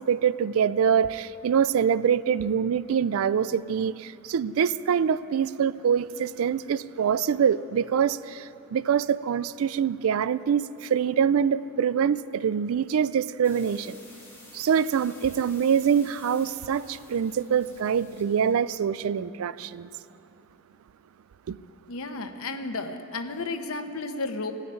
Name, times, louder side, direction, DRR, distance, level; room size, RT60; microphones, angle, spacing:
voice 1, 0.0-14.0 14.5-19.9 21.5-21.6, right 7 dB, 75° right, 0.3 m, -25 dB
sound 1, 13.4-18.6, left 2 dB, 10° left, 2.5 m, -51 dB
voice 2, 21.9-24.5, left 3 dB, 85° left, 0.9 m, -33 dB
15.5 x 6.5 x 9.9 m
head